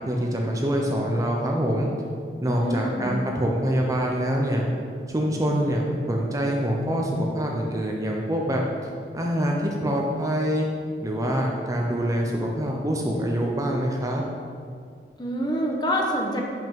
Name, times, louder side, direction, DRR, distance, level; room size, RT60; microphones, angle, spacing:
voice 1, 0.0-1.9 2.4-4.7 5.1-8.6 9.1-10.7 11.0-14.2, equal, 20° right, 0 dB, 0.6 m, -25 dB
voice 2, 2.4-3.2 15.2-16.4, equal, 25° left, 0 dB, 0.9 m, -26 dB
5.5 x 5.4 x 5.3 m, 2.2 s
head